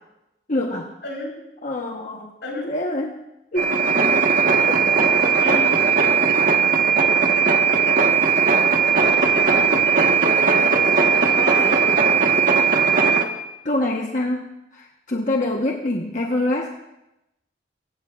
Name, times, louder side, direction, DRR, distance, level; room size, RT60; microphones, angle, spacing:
voice 1, 0.5-0.9 1.6-2.3 2.6-3.2 3.5-3.8 4.2-4.3 4.6-4.9 5.4-5.8 13.6-16.7, left 1 dB, 45° left, 0 dB, 1.1 m, -25 dB
sound 1, 3.6-13.2, right 5 dB, 50° right, 1.4 m, -18 dB
voice 2, 5.2-6.1 9.4-11.8, left 1 dB, 80° left, -2 dB, 6.8 m, -34 dB
25.0 x 16.0 x 2.5 m, 0.91 s
head